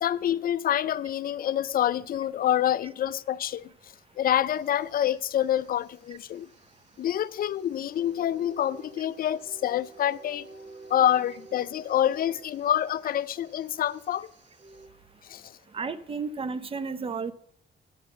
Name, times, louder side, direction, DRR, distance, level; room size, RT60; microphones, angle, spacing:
voice 1, 0.0-6.5 7.0-10.5 10.9-14.3 15.2-15.6, left 11 dB, 50° left, 0.4 m, -27 dB
sound 1, 4.5-14.9, right 3 dB, 65° right, 1.4 m, -52 dB
voice 2, 15.7-17.3, right 4 dB, 30° right, 0.6 m, -32 dB
8.8 x 5.3 x 6.7 m
cardioid pair, 90°, 20 cm